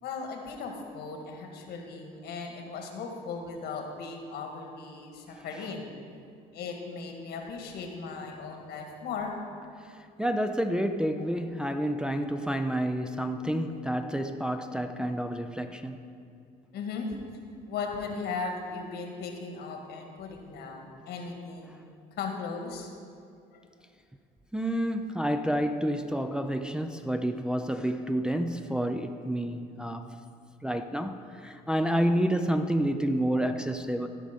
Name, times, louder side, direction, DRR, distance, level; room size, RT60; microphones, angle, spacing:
voice 1, 0.0-5.9 6.5-9.3 13.7-13.8 14.1-14.3 16.7-17.1 17.7-21.9 22.2-22.9 31.7-32.0, left 4 dB, 75° left, 1.5 m, -37 dB
voice 2, 10.2-16.0 24.5-30.1 30.6-34.1, equal, 5° right, 0.4 m, -29 dB
15.5 x 5.4 x 5.1 m
cardioid pair, 110°, 17 cm